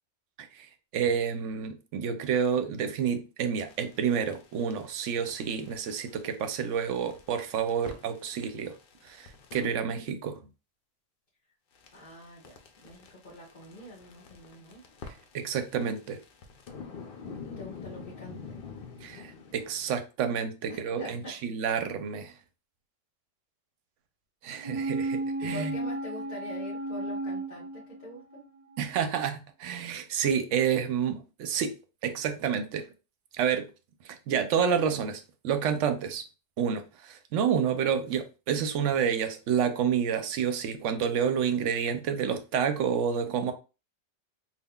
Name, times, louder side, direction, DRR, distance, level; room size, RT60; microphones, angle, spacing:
voice 1, 0.9-8.7 9.0-10.4 15.3-16.2 19.0-22.3 24.4-25.7 28.8-31.7 32.0-32.8 33.4-33.7 34.0-36.2 36.6-43.5, right 7 dB, 75° right, 0.9 m, -29 dB
sound 1, 3.7-9.7 11.7-19.9, left 5 dB, 55° left, 0.7 m, -47 dB
voice 2, 11.9-14.8 17.4-18.7 20.7-21.4 25.4-28.5, left 1 dB, 40° left, 1.2 m, -45 dB
sound 2, 24.6-28.4 28.7-28.8, right 2 dB, 45° right, 0.5 m, -33 dB
5.4 x 2.4 x 2.2 m
omnidirectional pair, 1.3 m